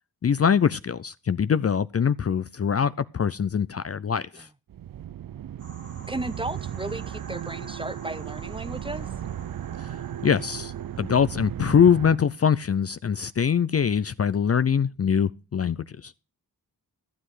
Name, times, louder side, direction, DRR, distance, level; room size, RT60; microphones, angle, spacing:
voice 1, 0.2-4.5 9.8-9.9 10.2-16.1, left 7 dB, 45° left, 0.5 m, -23 dB
sound 1, 4.7-12.2, right 10 dB, 65° right, 0.5 m, -36 dB
sound 2, 5.6-11.3, right 1 dB, 45° right, 2.1 m, -50 dB
voice 2, 6.1-9.1, right 2 dB, 15° right, 0.7 m, -34 dB
14.5 x 7.8 x 4.8 m
wide cardioid pair, 90°, 36 cm